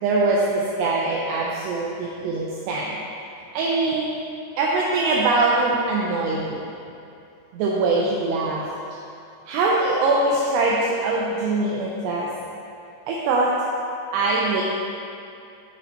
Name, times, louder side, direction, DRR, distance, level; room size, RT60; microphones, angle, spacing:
voice 1, 0.0-3.0 3.5-4.1 4.6-6.6 7.5-8.7 9.5-12.3 13.1-13.5 14.1-14.6, right 3 dB, 80° right, -4 dB, 2.5 m, -22 dB
9.8 x 6.1 x 3.0 m, 2.6 s
omnidirectional pair, 5.4 m